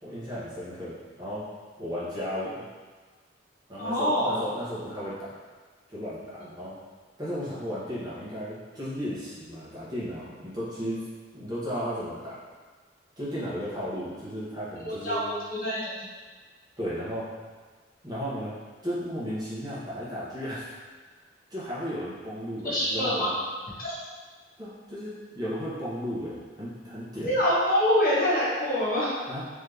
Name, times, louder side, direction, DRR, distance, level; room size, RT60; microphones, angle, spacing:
voice 1, 0.0-1.4 1.8-2.6 3.7-5.3 5.9-6.7 7.2-11.0 11.3-12.4 13.2-15.2 16.8-17.3 18.0-18.5 18.8-20.7 21.5-23.3 24.6-27.3 29.3-29.4, equal, 20° right, -10 dB, 1.2 m, -34 dB
voice 2, 3.8-4.4 14.8-15.2 15.6-16.0 22.6-23.3 23.8-23.9 27.2-29.1, equal, 50° left, -8 dB, 1.3 m, -25 dB
3.8 x 3.1 x 3.3 m, 1.4 s
head